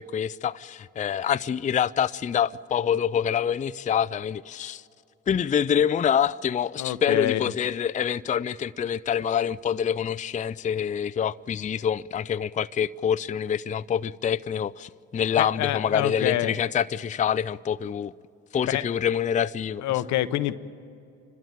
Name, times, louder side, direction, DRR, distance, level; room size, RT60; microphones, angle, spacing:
voice 1, 0.0-4.8 5.3-18.1 18.5-19.8, left 8 dB, 25° left, 0.4 m, -26 dB
voice 2, 6.8-7.4 15.4-16.6 18.7-18.8 19.8-20.6, left 14 dB, 75° left, 0.7 m, -26 dB
28.5 x 13.0 x 9.0 m
hypercardioid pair, 50°, 29 cm